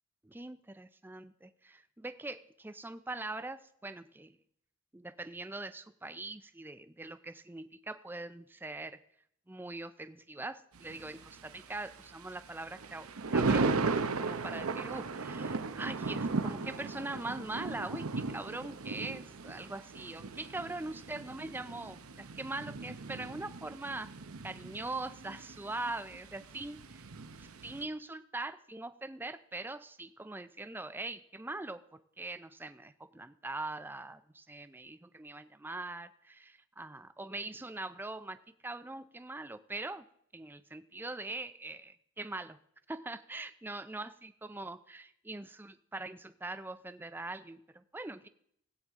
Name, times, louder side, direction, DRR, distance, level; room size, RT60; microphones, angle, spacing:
voice 1, 0.2-4.4 4.9-9.0 9.5-13.1 13.3-24.1 24.4-27.0 27.4-31.8 32.2-38.4 38.6-40.1 40.3-42.6 42.9-48.3, right 2 dB, 10° right, 12 dB, 0.4 m, -42 dB
Thunder, 10.7-27.8, right 3 dB, 85° right, 0.8 m, -37 dB
16.5 x 8.8 x 3.7 m, 0.69 s
head